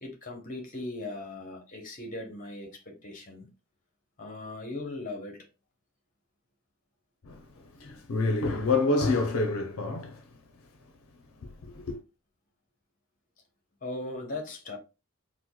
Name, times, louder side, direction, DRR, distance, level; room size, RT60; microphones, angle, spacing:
voice 1, 0.0-3.5 4.2-5.5 13.8-14.8, left 2 dB, 35° left, 0.8 m, -38 dB
voice 2, 7.2-10.2 11.4-12.0, left 3 dB, 70° left, 0.5 m, -28 dB
4.6 x 2.0 x 2.2 m
head